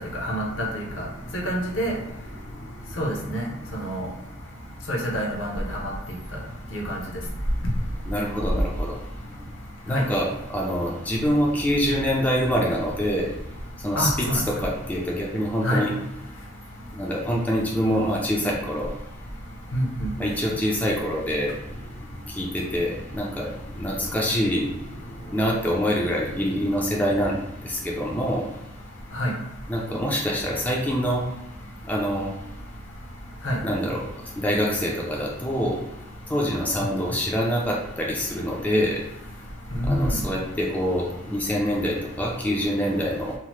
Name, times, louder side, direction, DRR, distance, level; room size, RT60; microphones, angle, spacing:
voice 1, 0.1-1.1 1.3-1.9 3.0-4.1 4.9-5.9 6.7-7.0 9.9-10.0 14.0-14.4 15.6-15.8 19.7-20.1 29.1-29.3 33.4-33.6 39.7-40.2, equal, 75° left, -1 dB, 0.7 m, -26 dB
voice 2, 8.1-9.0 9.9-13.3 13.8-15.9 16.9-18.9 20.2-21.5 22.3-24.7 25.3-28.5 29.7-31.2 31.9-32.3 33.6-34.0 34.4-35.8 36.3-39.0 39.9-43.3, equal, 10° left, -3 dB, 0.4 m, -25 dB
2.8 x 2.0 x 3.1 m, 0.88 s
head